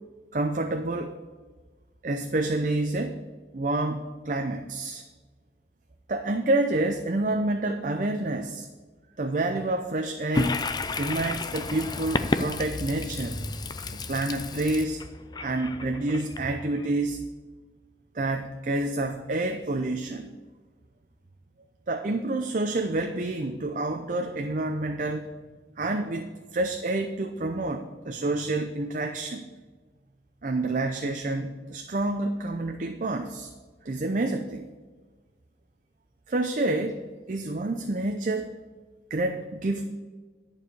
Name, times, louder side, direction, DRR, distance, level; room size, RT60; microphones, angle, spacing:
voice 1, 0.3-1.2 2.0-3.2 3.5-5.0 6.1-8.7 9.2-10.6 11.0-13.4 13.9-15.0 15.4-17.2 18.1-20.3 21.9-25.3 25.8-29.4 30.4-33.5 33.8-34.7 36.3-38.5 39.1-39.9, right 2 dB, 45° right, 5 dB, 0.6 m, -28 dB
Toilet flush, 10.3-16.9, left 3 dB, 25° left, 0.4 m, -31 dB
11.0 x 4.8 x 7.8 m, 1.4 s
head